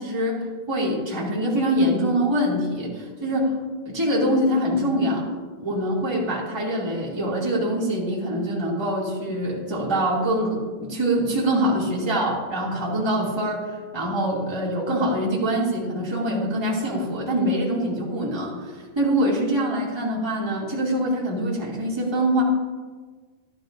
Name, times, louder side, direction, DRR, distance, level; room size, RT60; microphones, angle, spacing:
voice 1, 0.0-3.6 3.8-5.2 5.6-22.4, right 1 dB, 10° right, -5 dB, 1.2 m, -24 dB
13.0 x 12.0 x 2.6 m, 1.4 s
omnidirectional pair, 4.7 m